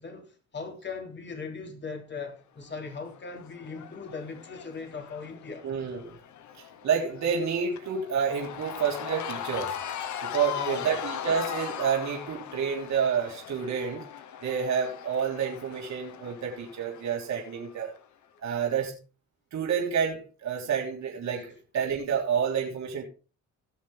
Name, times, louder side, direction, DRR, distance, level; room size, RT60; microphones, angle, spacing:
voice 1, 0.0-5.7 10.5-11.0, left 4 dB, 35° left, 3.2 m, -39 dB
Cheering / Crowd, 2.7-18.0, left 9 dB, 70° left, 1.3 m, -39 dB
voice 2, 5.6-6.1 6.8-9.8 10.2-14.1 14.4-17.9 18.4-19.0 19.5-23.1, right 7 dB, 65° right, 3.2 m, -29 dB
18.0 x 6.6 x 3.6 m
cardioid pair, 90°, 30 cm